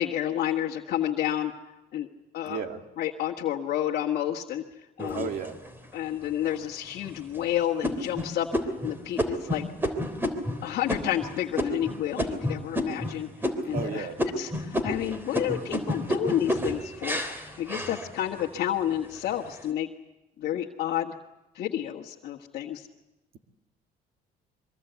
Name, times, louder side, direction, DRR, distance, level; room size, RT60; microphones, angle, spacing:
voice 1, 0.0-1.5 1.9-2.1 2.3-2.6 3.0-4.6 5.0-5.3 5.9-8.5 8.8-9.7 10.6-13.3 13.6-14.1 14.4-19.9 20.4-21.1 21.5-22.9, left 11 dB, 70° left, -2 dB, 1.7 m, -30 dB
voice 2, 2.4-2.8 5.1-5.6 13.6-14.2 17.7-18.1, right 6 dB, 60° right, 5 dB, 2.5 m, -34 dB
sound 1, 5.0-5.8 6.4-6.5 7.0-7.4 7.8-13.1 13.4-13.9 14.2-18.5 19.0-19.5, equal, 15° right, 3.5 m, -30 dB
24.0 x 24.0 x 8.2 m, 1.0 s
cardioid pair, 110°, 17 cm